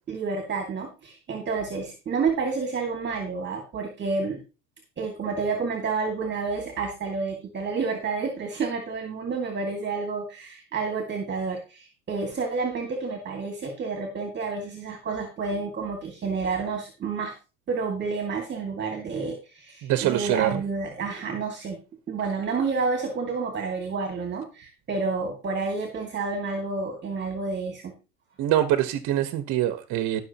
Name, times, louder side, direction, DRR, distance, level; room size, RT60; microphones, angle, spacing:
voice 1, 0.1-4.4 5.0-17.3 17.7-21.8 22.1-27.9, right 4 dB, 30° right, 2.3 m, -29 dB
voice 2, 19.8-20.5 28.4-30.2, right 12 dB, 55° right, 1.3 m, -24 dB
18.5 x 6.5 x 3.0 m
supercardioid pair, 110°, 36 cm